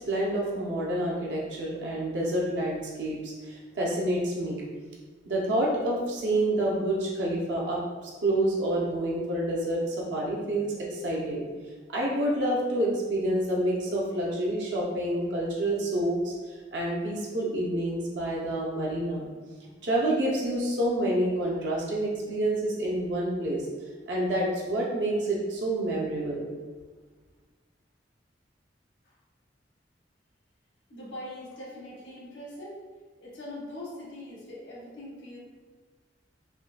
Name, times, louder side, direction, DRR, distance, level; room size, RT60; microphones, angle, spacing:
voice 1, 0.0-4.7 5.3-11.5 11.9-19.3 19.8-23.6 24.1-26.5, right 1 dB, 75° right, -4 dB, 0.6 m, -28 dB
voice 2, 30.9-32.8 33.2-35.4, left 1 dB, 80° left, -6 dB, 1.0 m, -42 dB
3.6 x 2.5 x 2.2 m, 1.4 s
head